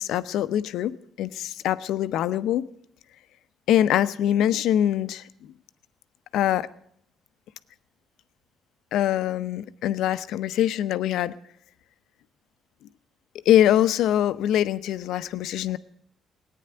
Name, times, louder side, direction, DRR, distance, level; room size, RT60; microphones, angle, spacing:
voice 1, 0.0-2.6 3.7-5.2 6.3-6.7 8.9-11.3 13.5-15.8, left 11 dB, 70° left, 13 dB, 0.7 m, -23 dB
18.0 x 9.4 x 7.8 m, 0.70 s
hypercardioid pair, 55°, 0 cm